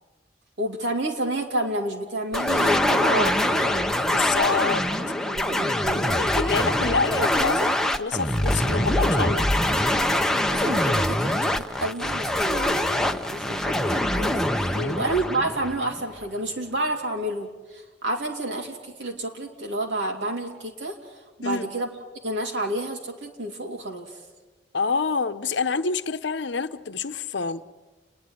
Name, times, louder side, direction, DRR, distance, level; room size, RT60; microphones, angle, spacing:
voice 1, 0.6-4.0 4.6-4.8 5.2-6.2 6.5-6.6 7.2-7.3 10.1-21.0 21.4-21.9 22.2-24.1, right 1 dB, 80° right, 2 dB, 3.1 m, -30 dB
sound 1, 2.3-16.2, left 1 dB, 5° left, 0.8 m, -24 dB
voice 2, 4.1-4.8 6.1-9.5 14.7-15.0 21.4-21.7 24.7-27.6, left 5 dB, 75° left, 11 dB, 0.8 m, -27 dB
29.5 x 10.5 x 9.8 m, 1.2 s
head